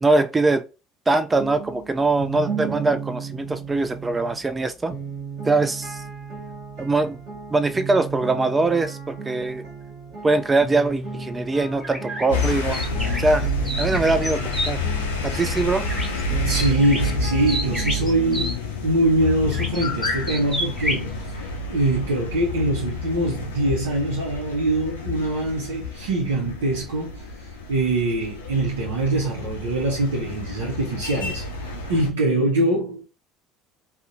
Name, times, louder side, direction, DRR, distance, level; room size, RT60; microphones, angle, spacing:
voice 1, 0.0-0.6 1.1-4.9 5.4-6.0 6.8-7.2 7.5-9.6 10.2-12.8 13.2-13.5 13.8-14.8 15.2-15.8, right 3 dB, 20° right, 0.3 m, -22 dB
sound 1, 1.3-18.0, right 5 dB, 60° right, 1.1 m, -35 dB
sound 2, 11.8-14.7 15.9-16.2 16.5-18.5 19.5-21.1, equal, 5° left, 1.1 m, -30 dB
sound 3, 12.3-32.1, left 2 dB, 90° left, 0.4 m, -29 dB
voice 2, 16.4-31.4 31.9-33.0, right 2 dB, 80° right, 0.5 m, -23 dB
2.7 x 2.0 x 2.4 m
hypercardioid pair, 70°, 0 cm